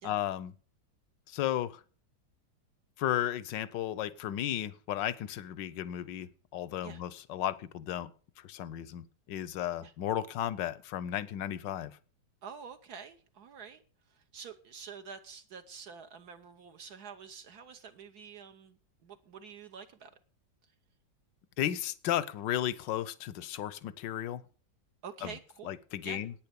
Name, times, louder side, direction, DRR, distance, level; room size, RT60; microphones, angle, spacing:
voice 1, 0.0-0.5 1.3-1.8 3.0-8.1 8.4-12.0 21.6-24.4 25.2-25.3 25.7-26.3, left 12 dB, 90° left, 18 dB, 1.4 m, -34 dB
voice 2, 12.4-13.8 14.1-20.1 25.0-25.8 26.0-26.2, right 6 dB, 65° right, 7 dB, 1.4 m, -47 dB
10.5 x 9.1 x 6.9 m, 0.40 s
omnidirectional pair, 1.9 m